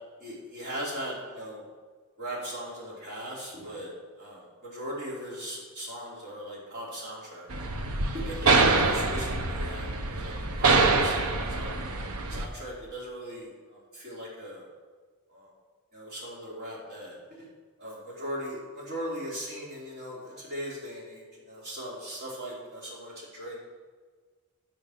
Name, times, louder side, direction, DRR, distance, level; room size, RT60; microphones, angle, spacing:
voice 1, 0.2-1.6 2.2-3.9 4.2-7.5 8.1-10.7 11.0-11.7 12.3-14.7 15.3-15.5 15.9-17.2 17.8-23.6, equal, 45° right, -5 dB, 3.7 m, -39 dB
sound 1, 7.5-12.5, right 3 dB, 85° right, 1.0 m, -25 dB
10.0 x 7.1 x 6.6 m, 1.5 s
head